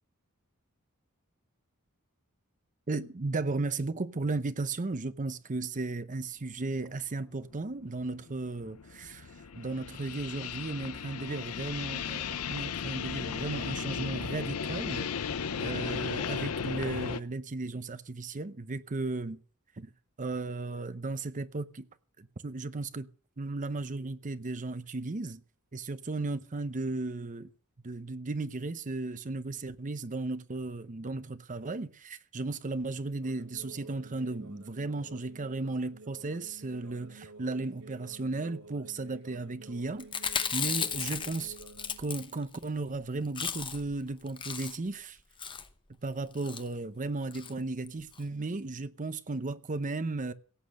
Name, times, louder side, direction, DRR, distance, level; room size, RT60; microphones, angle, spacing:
voice 1, 2.9-15.1 15.6-19.4 19.8-19.9 20.2-21.9 22.2-23.1 23.4-25.4 25.7-27.5 27.8-40.1 40.5-41.5 42.0-45.2 46.0-50.3, right 3 dB, 35° right, 0.7 m, -35 dB
sound 1, 6.8-6.9 7.5-17.2, left 6 dB, 85° left, 0.7 m, -36 dB
sound 2, 33.2-42.0, right 3 dB, 85° right, 3.2 m, -51 dB
Chewing mastication, 40.0-42.6 42.9-43.0 43.2-43.9 44.3-44.9 45.4-45.7 46.3-46.6 47.3-47.5 47.9-48.0 48.1-48.2, left 6 dB, 25° left, 0.9 m, -35 dB
17.0 x 8.3 x 6.3 m
head